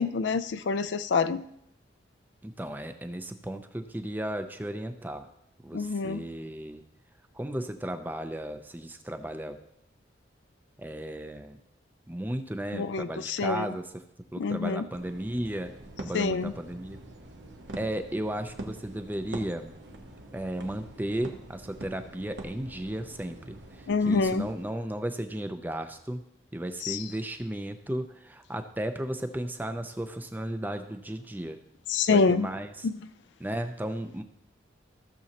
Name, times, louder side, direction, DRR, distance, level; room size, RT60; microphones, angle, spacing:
voice 1, 0.0-1.4 5.7-6.2 12.7-13.7 14.4-14.9 16.1-16.5 23.9-24.5 26.8-27.0 31.9-32.5, left 4 dB, 70° left, 13 dB, 0.4 m, -26 dB
voice 2, 2.4-5.3 5.6-6.8 7.3-9.6 10.8-11.6 12.1-14.0 14.3-15.7 16.0-17.0 17.8-19.7 20.3-26.2 26.5-31.6 32.1-32.9 33.4-34.2, right 1 dB, 10° right, 8 dB, 0.5 m, -34 dB
sound 1, 14.9-24.7, right 1 dB, 70° right, 1.1 m, -45 dB
15.0 x 6.9 x 2.9 m, 0.78 s
head